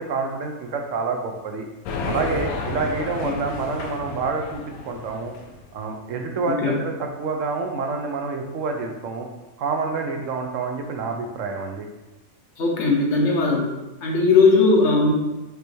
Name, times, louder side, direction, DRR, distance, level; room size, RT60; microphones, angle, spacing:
voice 1, 0.0-1.7 2.0-5.3 5.7-9.3 9.6-11.9, right 4 dB, 70° right, 3 dB, 0.9 m, -28 dB
sound 1, 1.9-5.6, left 3 dB, 85° left, 1.1 m, -32 dB
voice 2, 6.5-6.8 12.6-13.7 14.0-15.1, left 3 dB, 60° left, -1 dB, 1.0 m, -18 dB
5.1 x 3.3 x 3.1 m, 1.0 s
omnidirectional pair, 1.5 m